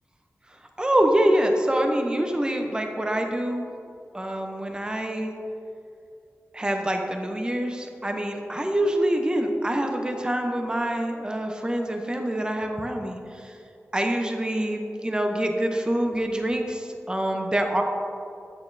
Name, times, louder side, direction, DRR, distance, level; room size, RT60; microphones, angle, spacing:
voice 1, 0.8-3.7 4.1-5.3 6.5-13.6 13.9-17.8, right 1 dB, 15° right, 3 dB, 0.6 m, -25 dB
8.2 x 6.6 x 2.6 m, 2.6 s
wide cardioid pair, 70°, 5 cm